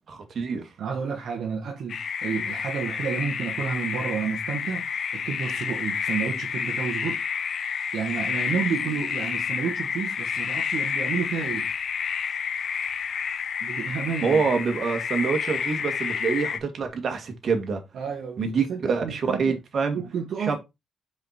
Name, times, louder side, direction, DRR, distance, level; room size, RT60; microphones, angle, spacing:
voice 1, 0.1-0.6 14.2-17.8 18.4-20.0 20.4-20.6, right 5 dB, 55° right, 2.1 m, -26 dB
voice 2, 0.8-4.9 5.1-7.2 7.9-11.7 13.6-14.4 17.9-19.6 19.9-20.6, right 6 dB, 75° right, 1.5 m, -30 dB
sound 1, 1.9-16.6, left 7 dB, 60° left, 0.8 m, -29 dB
5.3 x 5.1 x 4.4 m
cardioid pair, 75°, 0 cm